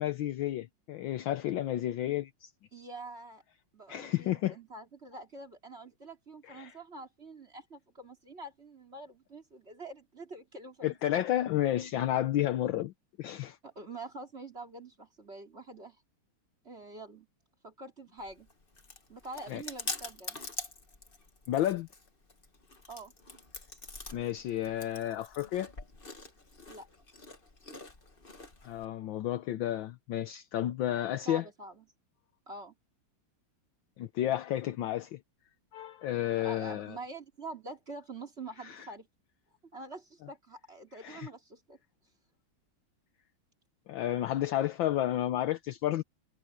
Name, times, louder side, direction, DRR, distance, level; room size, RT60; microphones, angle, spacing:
voice 1, 0.0-2.5 3.9-4.6 6.5-6.7 10.8-12.9 13.2-13.6 19.5-19.6 21.5-21.9 24.1-25.7 28.6-31.4 34.0-35.2 35.7-37.0 38.6-38.8 41.0-41.3 43.9-46.0, left 13 dB, 70° left, 1.4 m, -31 dB
voice 2, 2.7-3.4 3.7-11.2 13.6-16.0 16.6-17.3 17.6-18.5 19.1-20.4 22.9-23.1 26.7-26.9 31.2-31.8 32.5-32.7 36.3-39.1 39.7-41.8, right 2 dB, 30° right, 3.2 m, -46 dB
Chewing mastication, 18.2-28.8, left 3 dB, 25° left, 2.0 m, -45 dB
omnidirectional pair, 2.3 m